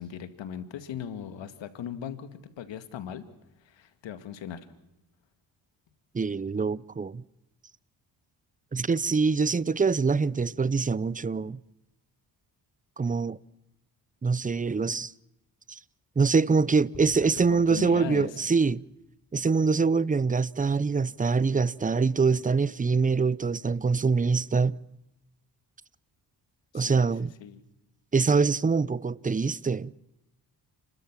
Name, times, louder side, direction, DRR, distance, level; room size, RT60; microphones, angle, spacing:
voice 1, 0.0-3.2 3.6-4.6 17.2-18.4 26.7-27.1 27.4-27.6, left 9 dB, 75° left, 2.1 m, -38 dB
voice 2, 6.1-7.2 8.7-11.6 13.0-13.4 14.2-15.1 15.7-15.8 16.2-18.8 19.3-24.8 26.7-27.3 28.1-29.9, right 4 dB, 20° right, 0.6 m, -24 dB
sound 1, 16.9-19.5, left 1 dB, 40° left, 6.0 m, -52 dB
30.0 x 13.0 x 7.4 m
supercardioid pair, 65°, 45 cm